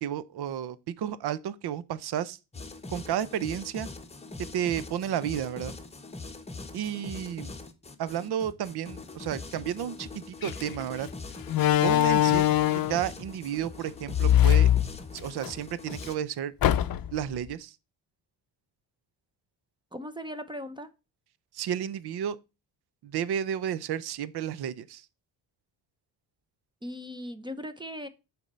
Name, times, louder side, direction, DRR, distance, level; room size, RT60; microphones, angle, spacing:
voice 1, 0.0-2.4 2.9-3.9 4.5-5.7 6.7-7.5 8.0-11.1 11.8-12.5 12.7-14.7 15.1-16.5 17.1-17.8 21.5-22.4 23.0-25.1, right 10 dB, 65° right, 0.7 m, -32 dB
sound 1, 2.5-16.1, left 3 dB, 15° left, 0.9 m, -42 dB
Slam, 10.4-10.6 11.5-13.1 14.1-15.5 15.9-16.0 16.6-17.2, left 12 dB, 55° left, 0.6 m, -22 dB
voice 2, 19.9-20.9 26.8-28.1, equal, 10° right, 0.6 m, -38 dB
7.1 x 4.4 x 5.3 m
cardioid pair, 115°, 43 cm